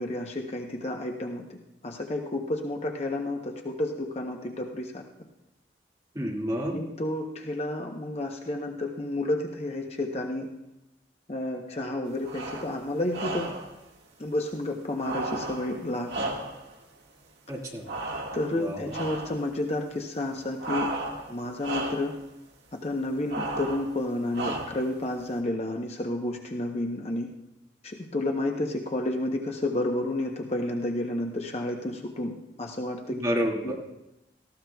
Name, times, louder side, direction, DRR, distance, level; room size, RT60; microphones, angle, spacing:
voice 1, 0.0-1.4 1.8-5.0 6.7-10.5 11.3-13.5 14.2-16.3 18.3-20.9 21.3-22.1 22.8-27.3 27.8-33.2 33.6-33.7, left 1 dB, 35° left, 2 dB, 0.8 m, -31 dB
voice 2, 6.1-6.8 17.5-17.8 18.5-18.9 33.1-33.7, equal, 20° right, -3 dB, 2.1 m, -29 dB
sound 1, 12.2-12.7 13.1-13.7 15.0-16.8 17.9-18.6 18.9-19.4 20.6-21.3 21.6-22.1 23.3-23.9 24.3-24.9, right 2 dB, 70° right, 1.6 m, -34 dB
18.5 x 14.5 x 2.3 m, 0.92 s
head